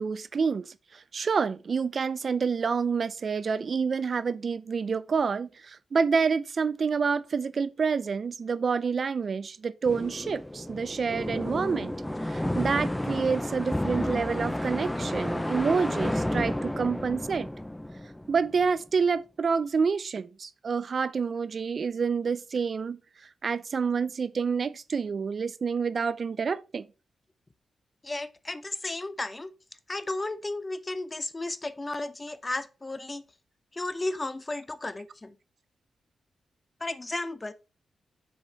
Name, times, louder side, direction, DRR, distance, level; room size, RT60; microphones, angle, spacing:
voice 1, 0.0-11.9 12.3-17.5 18.3-23.0 23.4-26.9, right 5 dB, 60° right, 0.4 m, -28 dB
sound 1, 9.9-18.7, left 1 dB, 10° left, 0.4 m, -31 dB
voice 2, 28.0-29.5 29.9-33.2 33.7-35.3 36.8-37.5, left 2 dB, 30° left, 0.8 m, -34 dB
6.3 x 4.7 x 4.3 m
cardioid pair, 55°, 0 cm